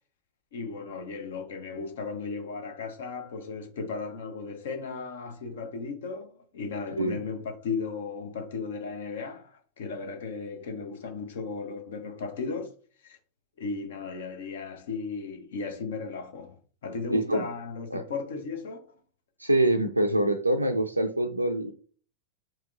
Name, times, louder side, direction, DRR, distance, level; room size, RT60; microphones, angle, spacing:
voice 1, 0.5-12.7 13.0-13.2 13.6-18.8, left 4 dB, 60° left, 0.7 m, -36 dB
voice 2, 17.1-17.5 17.9-18.0 19.4-21.7, right 1 dB, 85° right, 0.3 m, -25 dB
4.4 x 2.9 x 2.4 m
figure-of-eight pair, 90°, 0 cm